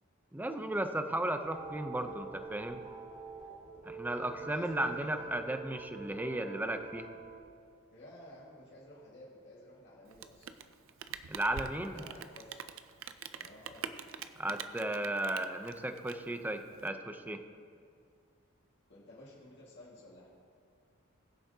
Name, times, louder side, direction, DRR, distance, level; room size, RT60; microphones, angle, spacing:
voice 1, 0.3-2.8 3.8-7.1 11.3-12.0 14.4-17.4, right 1 dB, 10° right, 7 dB, 0.5 m, -35 dB
sound 1, 1.2-7.4, right 4 dB, 35° right, 2.1 m, -47 dB
voice 2, 4.0-5.5 7.9-10.4 11.9-12.6 13.3-13.9 18.9-20.3, left 1 dB, 55° left, -5 dB, 1.9 m, -53 dB
Rain, 10.0-16.9, right 8 dB, 65° right, 0.5 m, -45 dB
21.0 x 7.1 x 2.8 m, 2.3 s
head